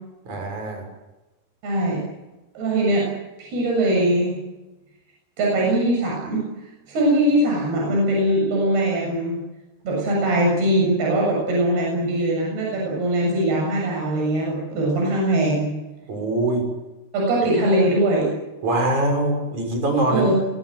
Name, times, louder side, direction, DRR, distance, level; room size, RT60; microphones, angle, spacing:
voice 1, 0.3-0.8 16.1-16.7 18.6-20.3, right 2 dB, 45° right, 4 dB, 8.0 m, -23 dB
voice 2, 1.6-2.0 2.6-3.1 3.4-4.4 5.4-6.4 6.9-9.4 9.9-15.7 17.1-18.3 20.1-20.4, right 1 dB, 75° right, -2 dB, 9.1 m, -21 dB
27.5 x 23.5 x 7.8 m, 1.1 s
omnidirectional pair, 4.6 m